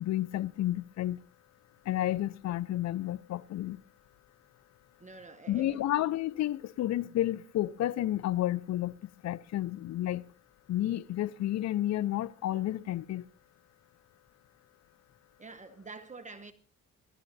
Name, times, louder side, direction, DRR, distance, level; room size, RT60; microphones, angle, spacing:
voice 1, 0.0-1.2 1.9-3.8 5.5-8.9 9.2-10.2 10.7-13.2, left 13 dB, 60° left, 0.6 m, -31 dB
voice 2, 5.0-6.0 15.4-16.5, right 3 dB, 25° right, 1.1 m, -47 dB
27.0 x 12.0 x 2.7 m
cardioid pair, 90°, 30 cm